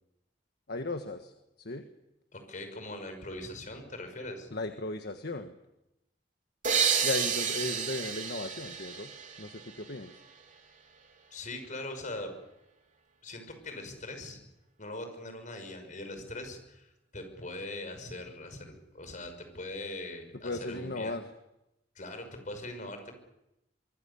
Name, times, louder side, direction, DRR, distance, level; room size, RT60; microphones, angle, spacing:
voice 1, 0.7-1.3 1.6-1.9 4.5-5.5 7.0-9.1 9.4-10.2 20.4-21.2, left 2 dB, 65° left, 6 dB, 1.5 m, -36 dB
voice 2, 2.3-4.5 11.3-12.3 13.2-14.4 14.8-21.2 22.0-23.1, left 2 dB, 45° left, 7 dB, 6.0 m, -41 dB
sound 1, 6.6-10.2, right 7 dB, 45° right, 3.6 m, -31 dB
24.5 x 24.5 x 7.1 m, 0.89 s
head